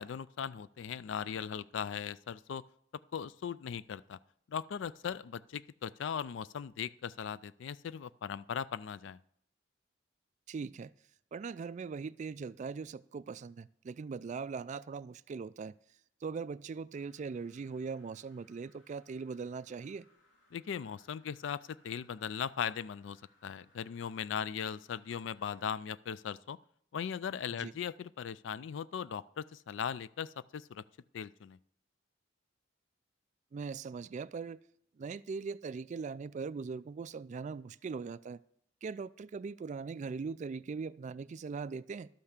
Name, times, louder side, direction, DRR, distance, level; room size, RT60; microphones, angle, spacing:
voice 1, 0.0-2.6 3.1-4.2 4.5-9.2 20.5-26.6 26.9-30.8 31.1-31.6, left 7 dB, 65° left, 18 dB, 0.4 m, -39 dB
voice 2, 10.5-10.9 11.3-15.7 16.2-20.1 27.6-27.7 33.5-34.6 35.0-38.4 38.8-42.1, right 5 dB, 40° right, 18 dB, 0.3 m, -40 dB
sound 1, 16.9-25.6, left 2 dB, 90° left, 2.3 m, -69 dB
12.0 x 5.7 x 6.6 m, 0.71 s
head